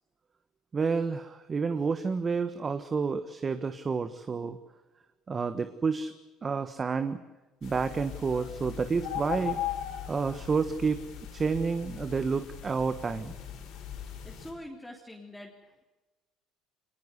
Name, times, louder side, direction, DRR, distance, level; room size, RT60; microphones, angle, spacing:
voice 1, 0.7-4.6 5.3-6.1 6.4-7.2 7.6-9.6 10.1-11.0 11.3-13.3, right 5 dB, 30° right, 10 dB, 1.4 m, -29 dB
sound 1, 7.6-14.5, left 10 dB, 70° left, 6.8 m, -39 dB
voice 2, 14.0-15.5, left 1 dB, 5° left, 0 dB, 3.3 m, -45 dB
23.5 x 20.0 x 8.2 m, 1.1 s
supercardioid pair, 90°, 0 cm